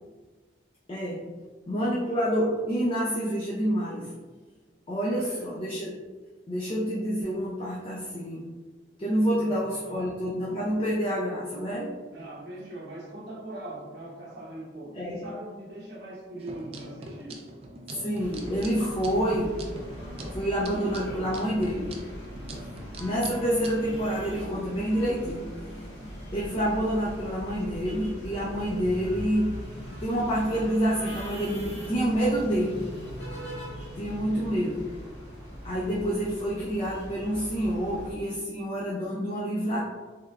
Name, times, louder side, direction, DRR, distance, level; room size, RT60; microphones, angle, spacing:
voice 1, 0.9-1.2 1.7-4.1 4.9-5.9 6.5-8.4 9.0-11.9 14.9-15.2 17.9-19.6 20.3-21.9 23.0-25.4 26.3-29.5 30.0-32.8 34.0-34.8 35.6-39.8, equal, 30° left, -5 dB, 0.4 m, -28 dB
voice 2, 5.0-5.5 9.4-10.1 12.1-17.4 34.3-34.9, right 1 dB, 65° right, -4 dB, 0.7 m, -41 dB
sound 1, 16.4-24.0, right 1 dB, 35° right, 0.3 m, -42 dB
sound 2, 18.2-38.1, equal, 80° left, 0.9 m, -40 dB
3.5 x 3.2 x 2.3 m, 1.3 s
head